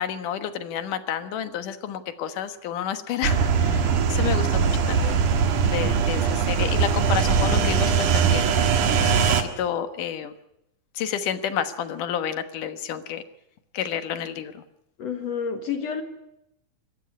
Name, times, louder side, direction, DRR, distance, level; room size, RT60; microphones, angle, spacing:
voice 1, 0.0-5.2 5.6-8.5 9.0-10.3 11.0-13.2 13.7-14.6, left 9 dB, 80° left, 10 dB, 2.9 m, -30 dB
sound 1, 3.2-9.4, right 6 dB, 75° right, 3.2 m, -21 dB
voice 2, 15.0-16.0, left 7 dB, 60° left, 7 dB, 2.5 m, -29 dB
25.5 x 13.5 x 9.7 m, 0.84 s
omnidirectional pair, 3.6 m